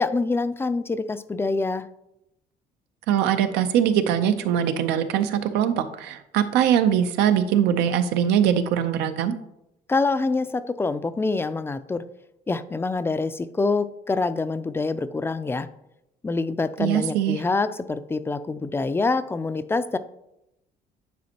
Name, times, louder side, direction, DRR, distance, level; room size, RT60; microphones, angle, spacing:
voice 1, 0.0-1.9 9.9-12.0 12.5-15.7 16.2-20.0, left 3 dB, 15° left, 13 dB, 0.3 m, -25 dB
voice 2, 3.1-9.3 16.8-17.4, right 9 dB, 90° right, 9 dB, 0.6 m, -22 dB
9.4 x 4.3 x 2.8 m, 0.84 s
cardioid pair, 110°, 17 cm